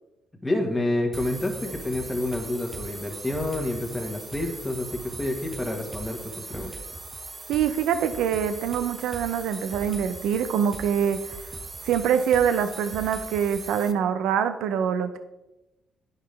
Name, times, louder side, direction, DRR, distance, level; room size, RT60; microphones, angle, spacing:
voice 1, 0.4-6.7, left 1 dB, 10° left, 1 dB, 1.4 m, -29 dB
sound 1, 1.1-13.9, right 3 dB, 25° right, 0.7 m, -39 dB
voice 2, 7.5-11.2 11.8-15.2, right 8 dB, 85° right, 10 dB, 0.5 m, -24 dB
10.0 x 5.6 x 3.3 m, 0.97 s
cardioid pair, 90°, 0 cm